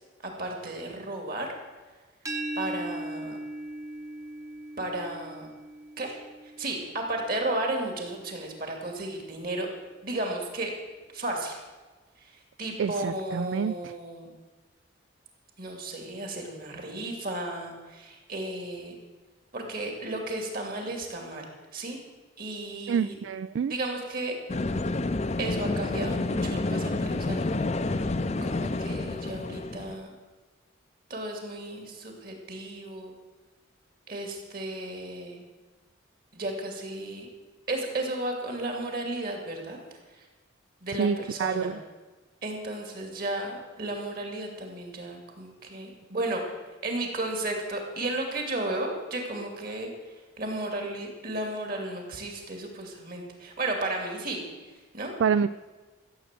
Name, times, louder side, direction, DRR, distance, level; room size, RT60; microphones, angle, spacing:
voice 1, 0.2-1.5 2.5-3.4 4.8-5.5 6.0-6.2 6.6-9.7 10.0-10.7 11.1-11.6 12.2-14.3 15.6-19.0 19.5-22.0 22.4-23.1 23.7-24.3 25.4-28.1 28.4-30.1 31.1-33.1 34.1-35.4 36.3-37.3 37.7-39.8 40.1-40.2 40.8-41.7 42.4-46.4 46.8-49.9 50.4-54.4 54.9-55.1, right 2 dB, 45° right, 2 dB, 2.7 m, -34 dB
sound 1, 2.3-8.0, right 1 dB, 15° right, 1.1 m, -39 dB
voice 2, 12.8-14.0 22.9-23.7 41.0-41.8 55.2-55.5, right 6 dB, 70° right, 14 dB, 0.3 m, -27 dB
sound 2, 24.5-30.0, left 2 dB, 35° left, 0.5 m, -29 dB
14.5 x 7.8 x 7.5 m, 1.3 s
head